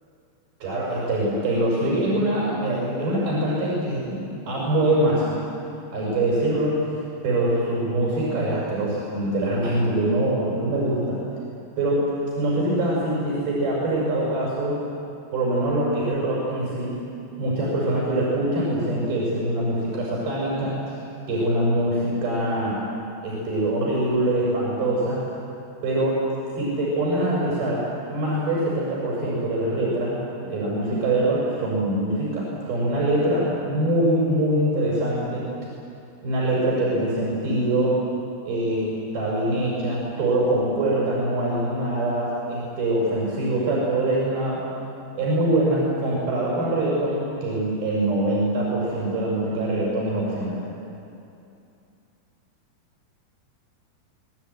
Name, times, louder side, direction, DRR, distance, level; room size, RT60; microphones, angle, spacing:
voice 1, 0.6-5.4 5.9-6.8 7.2-11.2 11.8-14.8 15.3-17.0 17.4-20.8 21.3-22.8 23.2-25.2 25.8-26.2 26.6-35.4 36.2-38.0 38.4-44.6 45.1-50.6, right 1 dB, 65° right, -5 dB, 7.8 m, -24 dB
24.0 x 20.0 x 9.6 m, 2.7 s
omnidirectional pair, 4.8 m